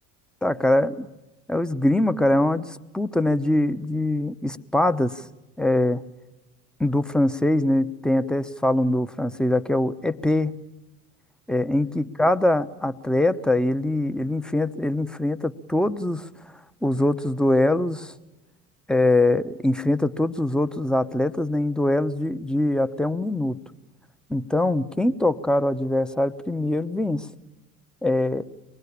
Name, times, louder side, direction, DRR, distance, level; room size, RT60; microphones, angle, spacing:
voice 1, 0.4-1.1 1.5-5.2 5.6-6.0 6.8-10.5 11.5-16.3 16.8-18.1 18.9-23.6 24.3-27.3 28.0-28.4, left 1 dB, ahead, 12 dB, 1.0 m, -23 dB
24.0 x 20.0 x 8.5 m, 1.0 s
hypercardioid pair, 65°, 47 cm